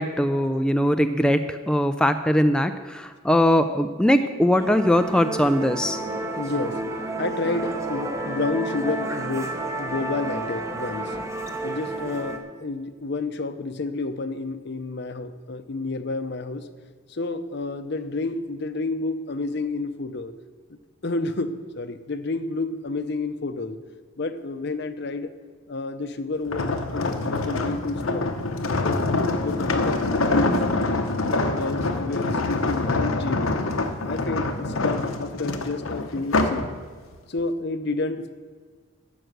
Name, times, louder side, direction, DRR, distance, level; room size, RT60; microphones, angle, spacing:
voice 1, 0.0-6.0, equal, 5° left, 7 dB, 0.4 m, -21 dB
Musical instrument, 4.6-12.4, right 2 dB, 15° right, 1.0 m, -31 dB
voice 2, 6.4-6.8 7.2-11.1 11.6-16.7 17.1-20.3 21.0-23.8 24.2-25.3 25.7-28.4 28.8-30.6 31.3-33.6 34.0-36.7 37.3-38.3, left 3 dB, 55° left, 11 dB, 0.7 m, -30 dB
sound 1, 26.5-36.7 37.1-37.4, left 2 dB, 90° left, 1.0 m, -25 dB
12.5 x 6.4 x 8.0 m, 1.6 s
head